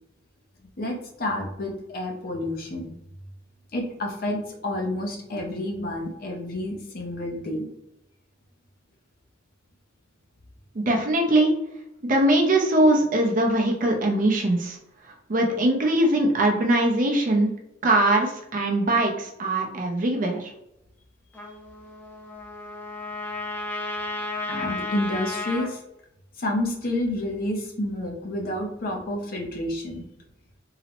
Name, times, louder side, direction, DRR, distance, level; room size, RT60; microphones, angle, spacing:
voice 1, 0.8-2.9 3.7-7.7 24.5-25.8 26.4-30.0, left 1 dB, 50° left, 1 dB, 0.6 m, -29 dB
voice 2, 10.7-11.5 12.1-14.8 15.3-17.5 17.8-20.5, right 1 dB, 45° right, 1 dB, 0.5 m, -21 dB
Trumpet, 21.3-25.7, left 2 dB, 10° left, 0.6 m, -33 dB
3.9 x 2.1 x 2.9 m, 0.83 s
head